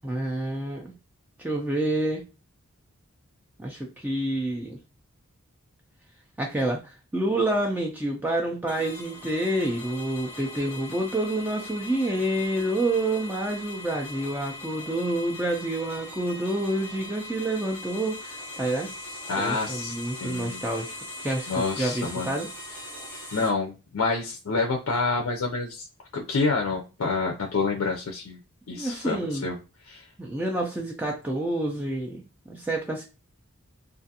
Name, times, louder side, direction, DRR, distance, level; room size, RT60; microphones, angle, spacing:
voice 1, 0.0-0.9 1.4-2.2 3.6-4.8 6.4-18.9 19.4-20.9 21.2-22.5 28.7-29.5 30.2-33.0, right 1 dB, 10° right, -1 dB, 0.4 m, -28 dB
sound 1, 8.7-23.5, left 1 dB, 10° left, 0.8 m, -40 dB
voice 2, 19.3-20.6 21.5-22.3 23.3-25.9 26.1-28.4 28.7-29.6 29.9-30.1, left 4 dB, 65° left, 2 dB, 0.5 m, -28 dB
2.5 x 2.4 x 2.7 m, 0.30 s
head